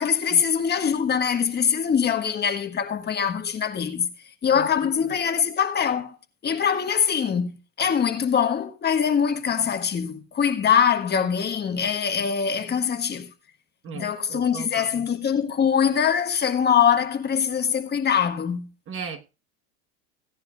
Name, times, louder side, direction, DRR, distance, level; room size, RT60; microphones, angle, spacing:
voice 1, 0.0-4.1 4.4-6.1 6.4-13.3 13.9-18.7, left 7 dB, 25° left, 1.4 m, -23 dB
voice 2, 13.8-15.1 18.9-19.2, right 6 dB, 30° right, 1.3 m, -37 dB
17.0 x 10.0 x 2.4 m
supercardioid pair, 115°, 39 cm